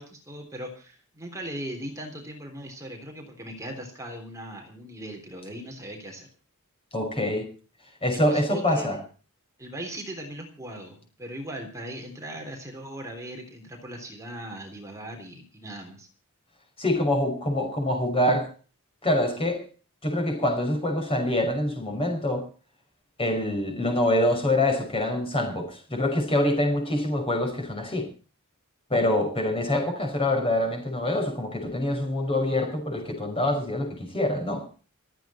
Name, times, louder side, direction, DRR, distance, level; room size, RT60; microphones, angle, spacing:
voice 1, 0.0-6.3 8.1-9.0 9.6-16.1, right 1 dB, 15° right, 1 dB, 3.5 m, -39 dB
voice 2, 6.9-7.5 8.0-9.0 16.8-18.5 19.0-19.6 20.0-22.5 23.2-28.1 28.9-34.7, left 1 dB, 25° left, 3 dB, 5.6 m, -25 dB
27.5 x 9.2 x 4.3 m, 0.37 s
head